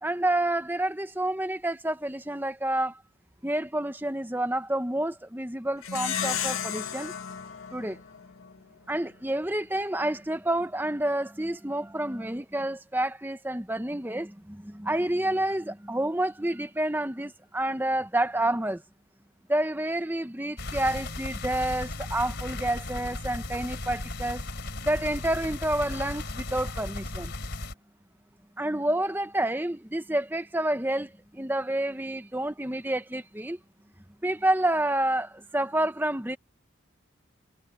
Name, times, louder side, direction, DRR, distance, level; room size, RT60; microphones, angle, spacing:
voice 1, 0.0-3.0 3.4-7.1 7.7-8.0 8.9-18.8 19.5-24.4 24.8-27.3 28.6-33.6 34.2-36.4, right 1 dB, 10° right, 1.0 m, -29 dB
Plucked string instrument, 5.8-8.6, left 8 dB, 85° left, 2.4 m, -33 dB
sound 1, 20.6-27.7, left 2 dB, 55° left, 3.8 m, -36 dB
head